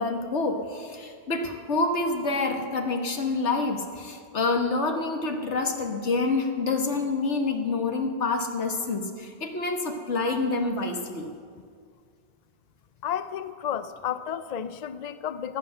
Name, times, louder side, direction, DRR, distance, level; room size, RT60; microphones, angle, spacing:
voice 1, 0.0-11.3, left 3 dB, 80° left, 4 dB, 1.7 m, -27 dB
voice 2, 13.0-15.6, left 9 dB, 50° left, 13 dB, 0.5 m, -32 dB
15.5 x 10.5 x 7.7 m, 2.1 s
omnidirectional pair, 1.2 m